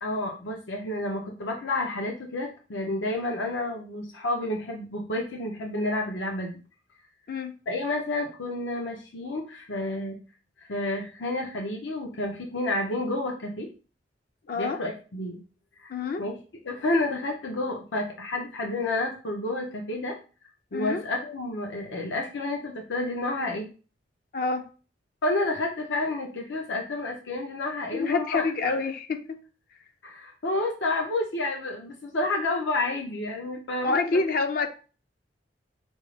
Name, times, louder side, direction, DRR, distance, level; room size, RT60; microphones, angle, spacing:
voice 1, 0.0-6.6 7.7-10.2 10.7-13.7 14.6-15.4 15.8-15.9 16.2-16.3 16.6-20.2 20.7-23.7 25.2-28.8 30.0-34.2, left 2 dB, 85° left, 1 dB, 0.8 m, -30 dB
voice 2, 14.5-14.8 15.9-16.2 20.7-21.0 24.3-24.7 27.9-29.4 33.8-34.7, left 4 dB, 55° left, 6 dB, 0.5 m, -27 dB
5.3 x 2.0 x 4.8 m, 0.36 s
head